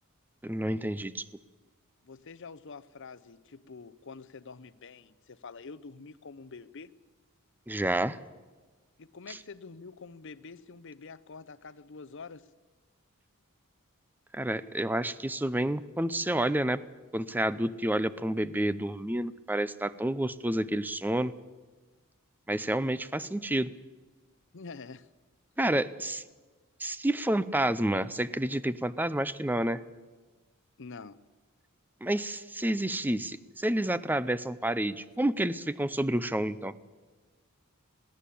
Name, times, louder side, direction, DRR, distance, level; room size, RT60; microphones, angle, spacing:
voice 1, 0.4-1.2 7.7-8.2 9.3-9.4 14.3-16.8 17.1-21.3 22.5-23.7 25.6-26.2 26.8-29.8 32.0-36.7, right 1 dB, 10° right, 15 dB, 0.6 m, -29 dB
voice 2, 2.0-6.9 9.0-12.5 24.5-25.1 30.8-31.2, left 4 dB, 60° left, 14 dB, 0.7 m, -46 dB
21.5 x 15.5 x 8.5 m, 1.3 s
head